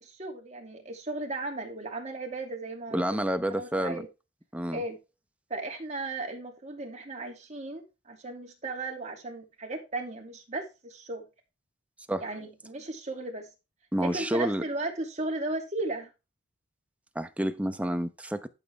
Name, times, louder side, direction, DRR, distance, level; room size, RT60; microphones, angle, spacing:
voice 1, 0.0-3.2 3.5-4.1 4.7-5.0 5.5-11.3 12.2-13.5 14.0-16.1, right 2 dB, 35° right, 2.7 m, -36 dB
voice 2, 2.9-4.0 4.5-4.8 12.1-12.3 13.9-14.6 17.1-18.5, right 1 dB, 5° right, 0.8 m, -29 dB
12.0 x 7.3 x 3.5 m
head